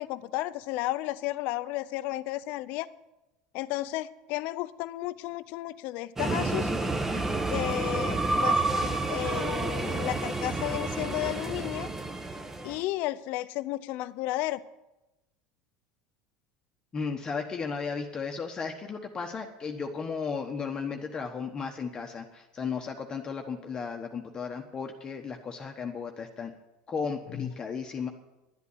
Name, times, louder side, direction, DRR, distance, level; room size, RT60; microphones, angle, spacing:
voice 1, 0.0-2.9 3.5-6.7 7.5-8.6 9.1-11.9 12.6-14.6 27.3-27.5, left 16 dB, 60° left, 15 dB, 0.7 m, -33 dB
sound 1, 6.2-12.8, right 2 dB, 15° right, 1.1 m, -29 dB
voice 2, 16.9-26.5 26.9-28.1, left 5 dB, 25° left, 3 dB, 1.1 m, -35 dB
11.5 x 8.3 x 9.8 m, 0.99 s
supercardioid pair, 120°, 3 cm